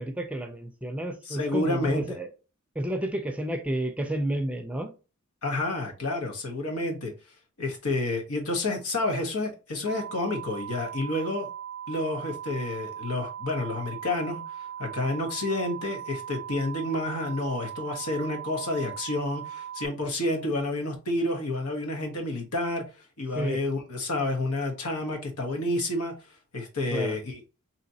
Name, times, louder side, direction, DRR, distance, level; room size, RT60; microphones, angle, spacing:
voice 1, 0.0-2.3 2.7-4.9 23.4-23.6 26.9-27.2, right 1 dB, 5° right, 0.5 m, -30 dB
voice 2, 1.3-2.0 5.4-7.1 7.6-11.5 11.9-14.4 14.8-22.8 23.2-26.1 26.5-27.4, left 2 dB, 85° left, 1.2 m, -29 dB
sound 1, 9.9-19.9, right 9 dB, 85° right, 0.5 m, -39 dB
4.0 x 2.9 x 2.8 m
head